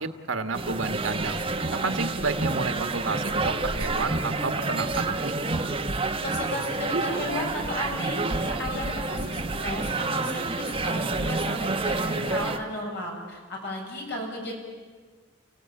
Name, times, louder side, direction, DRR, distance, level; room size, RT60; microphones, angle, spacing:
voice 1, 0.0-1.4 1.7-5.4, right 4 dB, 85° right, 8 dB, 1.6 m, -30 dB
sound 1, 0.5-12.6, right 3 dB, 25° right, 1.2 m, -29 dB
sound 2, 4.8-7.9 8.2-8.7 9.1-9.2 9.5-10.2 10.9-11.6 12.2-12.4, right 2 dB, 45° right, 4.5 m, -40 dB
voice 2, 6.0-14.5, left 1 dB, 55° left, 0 dB, 7.0 m, -34 dB
29.0 x 17.0 x 8.8 m, 1.5 s
head